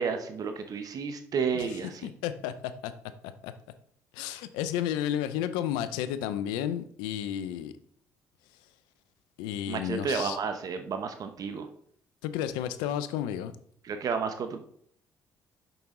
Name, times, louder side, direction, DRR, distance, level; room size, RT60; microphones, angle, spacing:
voice 1, 0.0-2.1 9.7-11.7 13.8-14.6, right 5 dB, 55° right, 7 dB, 1.0 m, -31 dB
voice 2, 2.0-2.9 3.4-3.5 4.1-7.7 9.4-10.4 12.2-13.6, left 10 dB, 85° left, 12 dB, 0.6 m, -32 dB
6.9 x 6.1 x 3.8 m, 0.63 s
supercardioid pair, 65°, 7 cm